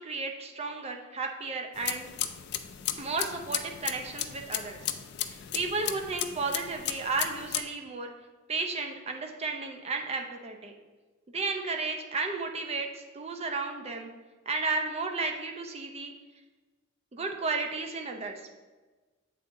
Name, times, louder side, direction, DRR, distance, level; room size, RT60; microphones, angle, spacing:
voice 1, 0.0-2.1 3.0-4.9 5.5-8.1 8.5-10.7 11.3-14.1 14.5-16.1 17.1-18.6, right 3 dB, 30° right, 3 dB, 0.6 m, -33 dB
sound 1, 1.7-7.6, left 11 dB, 55° left, 0.3 m, -35 dB
7.4 x 3.8 x 3.6 m, 1.3 s
head